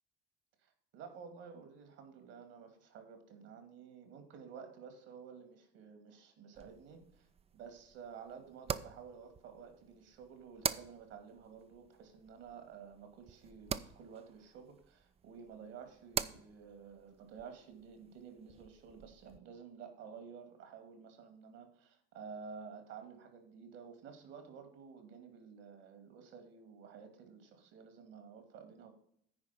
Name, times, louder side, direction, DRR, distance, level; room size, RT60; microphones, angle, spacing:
voice 1, 0.6-7.3 7.5-28.9, right 6 dB, 60° right, 7 dB, 2.4 m, -52 dB
sound 1, 6.5-19.4, right 7 dB, 20° right, 0.5 m, -45 dB
9.6 x 4.8 x 5.9 m, 0.68 s
hypercardioid pair, 70°, 29 cm